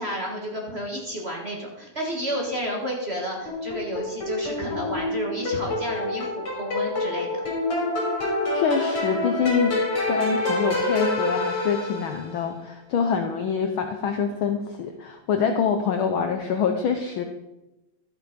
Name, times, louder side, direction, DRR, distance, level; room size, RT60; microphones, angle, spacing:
voice 1, 0.0-7.3, equal, 30° right, -1 dB, 1.4 m, -31 dB
sound 1, 3.5-12.3, left 2 dB, 50° left, 4.2 m, -27 dB
voice 2, 8.5-9.8 10.1-17.2, left 6 dB, 85° left, 6 dB, 1.1 m, -25 dB
12.5 x 8.0 x 5.1 m, 0.99 s
omnidirectional pair, 3.3 m